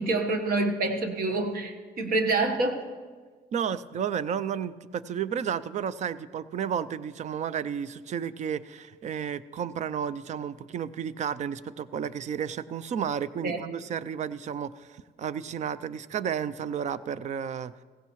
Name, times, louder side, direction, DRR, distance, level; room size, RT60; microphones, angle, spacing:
voice 1, 0.0-2.8 13.4-13.6, right 2 dB, 60° right, 5 dB, 1.3 m, -27 dB
voice 2, 3.5-17.7, right 8 dB, 45° right, 17 dB, 0.4 m, -32 dB
16.0 x 15.5 x 3.1 m, 1.5 s
cardioid pair, 110°, 17 cm